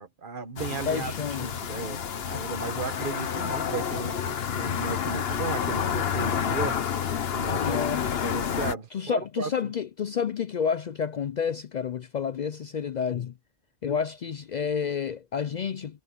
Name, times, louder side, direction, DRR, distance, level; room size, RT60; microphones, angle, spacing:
voice 1, 0.0-6.8 7.3-7.8 8.1-9.7, right 5 dB, 55° right, 1.3 m, -35 dB
sound 1, 0.6-8.7, left 8 dB, 70° left, 1.1 m, -29 dB
voice 2, 0.9-1.5 7.5-8.1 8.9-13.3 13.8-16.0, left 7 dB, 55° left, 0.5 m, -30 dB
omnidirectional pair, 1.1 m